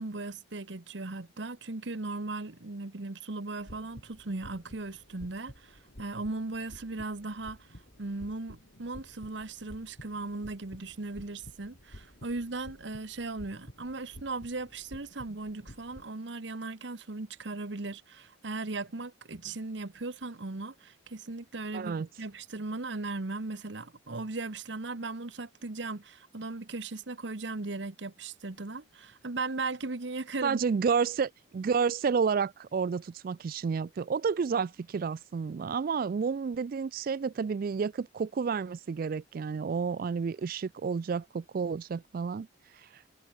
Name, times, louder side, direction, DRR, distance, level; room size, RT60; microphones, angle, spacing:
voice 1, 0.0-7.7 8.0-30.6, right 3 dB, 65° right, 1.2 m, -37 dB
sound 1, 3.6-16.1, equal, 55° left, 5.9 m, -52 dB
voice 2, 21.7-22.1 30.4-42.5 42.9-43.0, right 5 dB, 45° right, 0.3 m, -30 dB
head